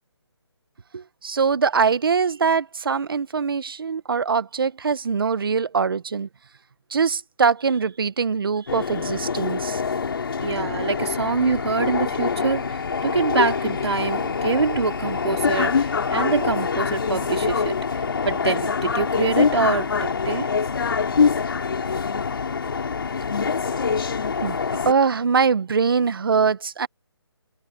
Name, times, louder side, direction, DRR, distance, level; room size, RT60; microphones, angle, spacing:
voice 1, 0.9-6.3 6.9-9.8 24.4-24.6 24.8-26.9, right 5 dB, 55° right, 1.3 m, -22 dB
sound 1, 8.7-24.9, left 5 dB, 55° left, 4.7 m, -25 dB
voice 2, 10.4-17.7 18.2-20.5, right 4 dB, 70° right, 4.6 m, -25 dB
hypercardioid pair, 170°, 14 cm